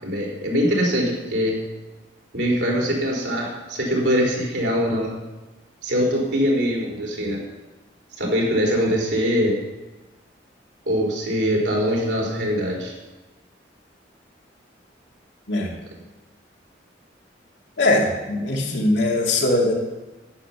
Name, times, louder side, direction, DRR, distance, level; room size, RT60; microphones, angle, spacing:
voice 1, 0.0-1.6 2.3-5.1 5.8-7.4 8.2-9.6 10.9-12.9, equal, 70° right, -1 dB, 4.2 m, -22 dB
voice 2, 17.8-19.7, left 2 dB, 70° left, -1 dB, 2.7 m, -21 dB
11.5 x 7.5 x 9.4 m, 1.1 s
head